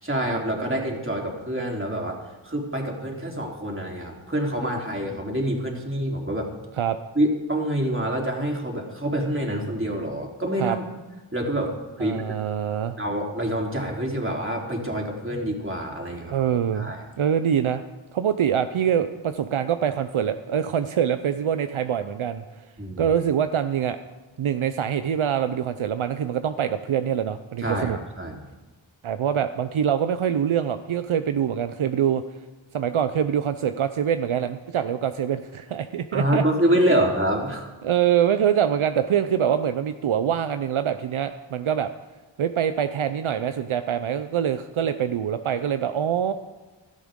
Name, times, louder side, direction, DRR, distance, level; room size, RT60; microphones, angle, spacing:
voice 1, 0.0-6.5 7.2-10.8 11.3-12.4 13.0-16.4 16.7-17.0 22.8-23.1 27.6-28.5 36.1-37.7, right 1 dB, 25° right, -1 dB, 3.7 m, -26 dB
voice 2, 12.0-13.0 16.3-17.8 18.1-22.4 23.0-24.0 24.4-28.0 29.0-32.2 32.7-36.4 37.8-41.9 42.4-46.3, right 9 dB, 75° right, 10 dB, 0.7 m, -24 dB
17.0 x 12.5 x 3.8 m, 1.2 s
cardioid pair, 40°, 49 cm